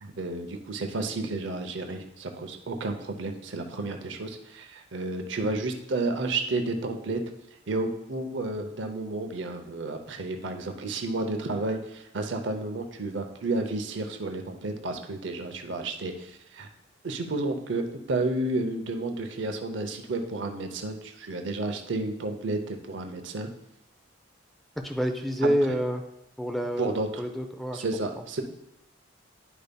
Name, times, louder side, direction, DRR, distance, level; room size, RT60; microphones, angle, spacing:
voice 1, 0.0-7.2 7.7-16.7 17.0-23.5 25.4-25.5 26.8-27.1 27.7-28.4, right 2 dB, 60° right, 5 dB, 0.7 m, -31 dB
voice 2, 24.8-26.0 26.4-27.8, equal, ahead, 5 dB, 0.5 m, -28 dB
10.5 x 5.2 x 2.2 m, 0.81 s
head